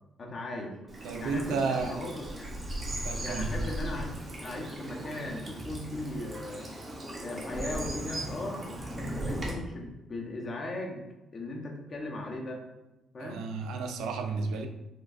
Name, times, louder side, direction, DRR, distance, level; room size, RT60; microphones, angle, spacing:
voice 1, 0.2-0.8 1.2-2.6 3.2-4.2 4.4-6.7 7.2-8.6 8.9-11.0 11.3-12.6 13.1-13.4, left 2 dB, 45° left, 0 dB, 0.7 m, -38 dB
Bird vocalization bird call bird song / Stream, 0.9-9.5, right 1 dB, 35° right, 0.9 m, -37 dB
voice 2, 1.0-2.0 2.9-3.6 13.2-14.7, right 4 dB, 85° right, 5 dB, 0.3 m, -32 dB
4.4 x 2.3 x 2.4 m, 0.99 s
cardioid pair, 90°, 0 cm